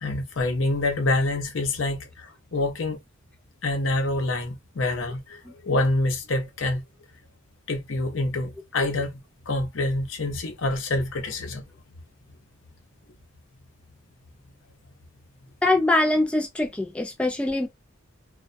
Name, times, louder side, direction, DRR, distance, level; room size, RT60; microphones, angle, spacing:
voice 1, 0.0-3.0 3.6-6.8 7.7-9.2 9.5-11.6, left 2 dB, 70° left, 0.7 m, -26 dB
voice 2, 15.6-17.7, left 2 dB, 5° left, 0.3 m, -23 dB
2.2 x 2.2 x 2.5 m
head